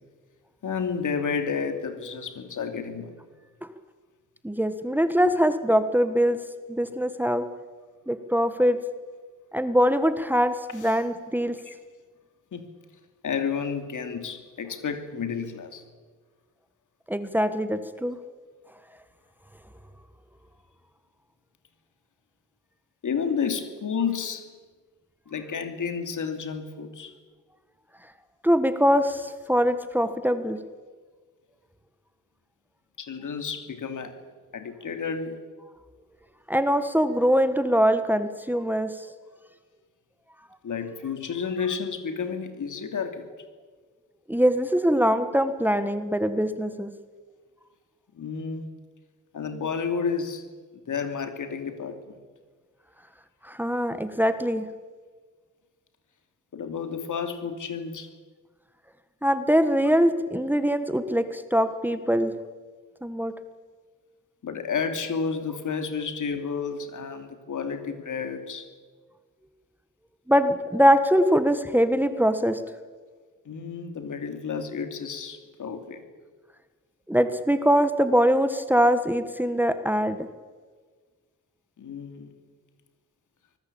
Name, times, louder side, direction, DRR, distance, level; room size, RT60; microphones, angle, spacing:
voice 1, 0.6-3.2 5.2-5.3 10.8-11.0 11.6-11.7 12.5-12.7 13.2-15.8 23.0-24.5 25.3-27.1 33.0-34.2 34.5-35.4 40.6-43.3 48.1-48.7 49.3-50.4 50.7-52.2 56.5-58.1 64.4-68.7 73.4-76.1 81.8-82.3, left 6 dB, 70° left, 7 dB, 3.0 m, -31 dB
voice 2, 4.4-6.4 6.7-7.5 8.1-8.8 9.5-11.6 17.1-18.2 28.4-30.6 36.5-39.1 44.3-46.9 53.4-54.6 59.2-62.4 63.0-63.4 70.3-72.6 77.1-80.3, equal, 5° right, 10 dB, 1.4 m, -23 dB
25.5 x 20.0 x 8.7 m, 1.5 s
wide cardioid pair, 125°, 32 cm